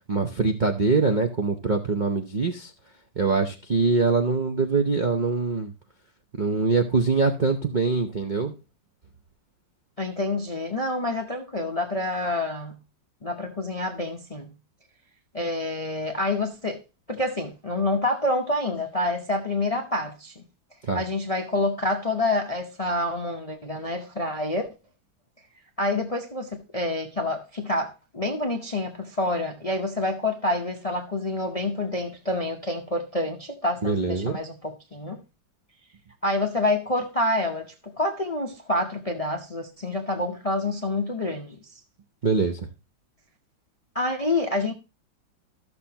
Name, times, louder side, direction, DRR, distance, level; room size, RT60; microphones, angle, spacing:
voice 1, 0.1-2.7 3.2-5.7 6.4-8.5 20.8-21.0 33.8-34.3 42.2-42.7, right 4 dB, 75° right, 0.4 m, -23 dB
voice 2, 10.0-12.8 13.2-14.5 15.3-16.8 17.1-20.4 20.9-24.7 25.8-35.2 36.2-41.6 43.9-44.7, left 2 dB, 50° left, 0.4 m, -27 dB
13.5 x 6.7 x 2.8 m
omnidirectional pair, 2.1 m